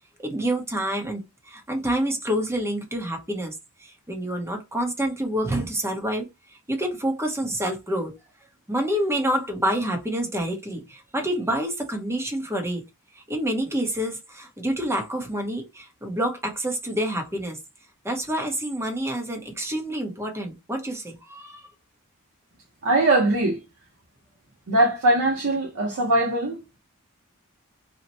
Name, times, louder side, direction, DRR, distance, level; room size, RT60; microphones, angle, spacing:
voice 1, 0.2-1.2 1.5-3.5 3.8-8.1 8.7-12.8 13.1-17.6 18.0-21.7, right 1 dB, 10° right, 0.7 m, -28 dB
voice 2, 22.8-23.6 24.7-26.8, right 2 dB, 60° right, 0.8 m, -21 dB
2.9 x 2.1 x 4.0 m
head